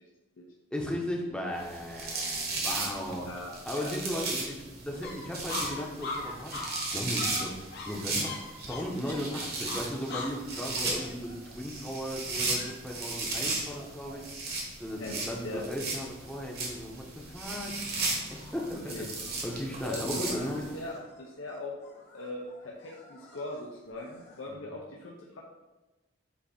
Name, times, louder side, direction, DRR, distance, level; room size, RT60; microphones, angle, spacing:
voice 1, 0.7-6.6 6.9-7.5 7.9-14.2 14.8-17.9 18.3-19.0 19.4-20.8 24.5-24.7, equal, 5° left, -1 dB, 0.8 m, -36 dB
sound 1, 1.6-20.8, right 3 dB, 50° right, 1.3 m, -36 dB
voice 2, 3.2-4.2 15.0-15.1 15.4-15.6 18.7-19.1 19.8-20.4 20.7-21.7 22.1-25.4, left 2 dB, 75° left, -3 dB, 0.8 m, -40 dB
sound 2, 5.0-14.5 14.9-15.0 15.2-15.9 16.2-16.8 17.3-17.6 18.0-24.5, left 3 dB, 55° left, 1.2 m, -43 dB
8.3 x 2.8 x 4.2 m, 1.1 s
head